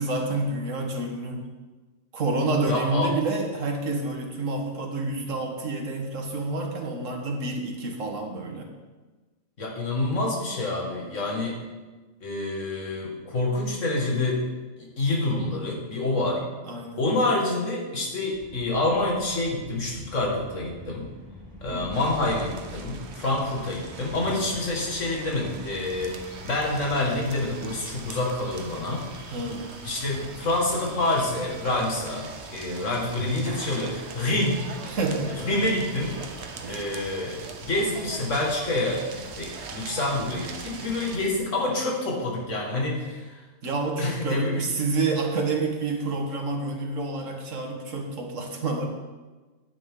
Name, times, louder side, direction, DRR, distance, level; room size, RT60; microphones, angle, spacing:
voice 1, 0.0-1.5 2.1-8.7 16.6-17.0 21.7-22.0 29.3-29.7 34.9-35.6 36.6-36.9 43.6-48.9, right 3 dB, 90° right, 2 dB, 1.8 m, -28 dB
voice 2, 2.7-3.1 9.6-11.6 12.2-14.5 15.0-16.4 17.0-21.1 21.6-29.1 29.8-34.6 35.4-36.2 36.7-43.3 44.0-44.6, left 2 dB, 80° left, -2 dB, 2.4 m, -27 dB
sound 1, 18.3-28.1, left 2 dB, 15° left, 1.6 m, -46 dB
sound 2, 21.9-41.2, right 5 dB, 65° right, 1.1 m, -41 dB
sound 3, 25.8-41.4, equal, 5° right, 2.5 m, -48 dB
10.5 x 9.3 x 3.8 m, 1.3 s
omnidirectional pair, 1.3 m